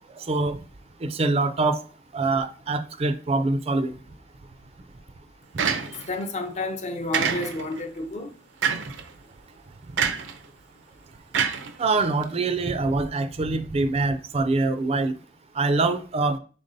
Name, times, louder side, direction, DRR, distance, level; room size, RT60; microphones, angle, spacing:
voice 1, 0.2-0.6 1.0-1.8 2.1-4.0 11.8-15.1 15.5-16.4, right 3 dB, 35° right, 0.4 m, -24 dB
sound 1, 5.6-6.2 7.1-7.8 8.6-9.0 10.0-10.4 11.3-12.2, right 6 dB, 85° right, 0.5 m, -26 dB
voice 2, 6.1-8.3, left 2 dB, 40° left, 0.5 m, -30 dB
5.2 x 3.6 x 2.6 m
head